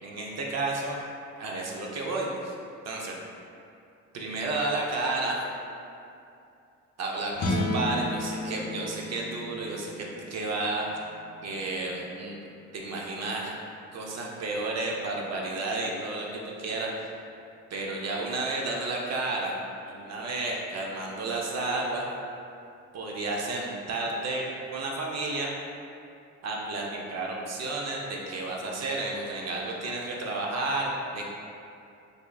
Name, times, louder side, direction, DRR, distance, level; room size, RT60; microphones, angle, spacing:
voice 1, 0.0-1.0 1.4-2.6 2.8-3.1 4.1-5.4 7.0-10.9 11.4-12.4 12.7-13.5 13.9-17.1 17.7-19.5 19.9-22.1 22.9-24.5 24.7-25.5 26.4-31.2, right 2 dB, 60° right, -2 dB, 0.6 m, -31 dB
sound 1, 7.3-13.7, left 1 dB, 50° left, 0.6 m, -35 dB
3.5 x 3.4 x 2.3 m, 2.6 s
cardioid pair, 90°, 30 cm